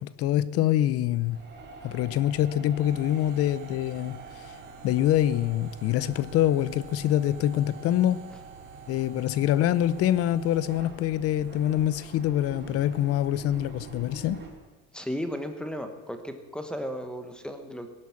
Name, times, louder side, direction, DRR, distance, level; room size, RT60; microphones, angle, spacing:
voice 1, 0.0-1.4 1.8-4.5 4.8-8.3 8.9-14.4, left 12 dB, 50° left, 0.7 m, -25 dB
sound 1, 1.2-14.5, right 4 dB, 35° right, 3.4 m, -47 dB
sound 2, 2.8-10.8, right 7 dB, 75° right, 1.0 m, -48 dB
voice 2, 14.9-17.9, equal, 5° left, 1.2 m, -35 dB
18.0 x 11.0 x 7.2 m
cardioid pair, 160°, 31 cm